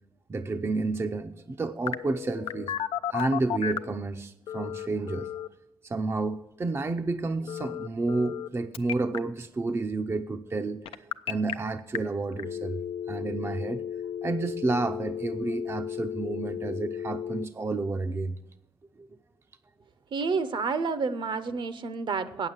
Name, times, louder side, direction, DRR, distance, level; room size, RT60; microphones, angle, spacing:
voice 1, 0.3-2.7 3.1-5.3 5.8-13.8 14.2-18.4 19.0-19.1, right 3 dB, 30° right, 7 dB, 0.5 m, -30 dB
Telephone, 1.9-4.0 4.5-5.5 7.5-8.5 8.7-9.2 10.9-11.5 12.0-12.1 12.4-17.4, left 9 dB, 80° left, 0.5 m, -34 dB
voice 2, 20.1-22.5, right 4 dB, 55° right, 13 dB, 0.8 m, -29 dB
8.6 x 7.3 x 8.1 m, 0.91 s
cardioid pair, 80°, 9 cm